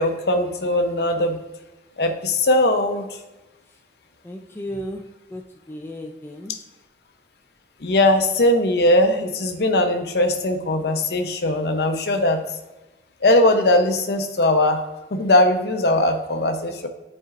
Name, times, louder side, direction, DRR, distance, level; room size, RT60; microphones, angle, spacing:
voice 1, 0.0-1.4 2.0-3.2 6.5-6.6 7.8-12.4 13.2-14.8 15.1-16.9, left 1 dB, 65° left, 6 dB, 0.7 m, -20 dB
voice 2, 4.2-5.0 5.3-6.6, equal, 15° left, 1 dB, 0.3 m, -34 dB
10.0 x 4.3 x 2.5 m, 1.0 s
head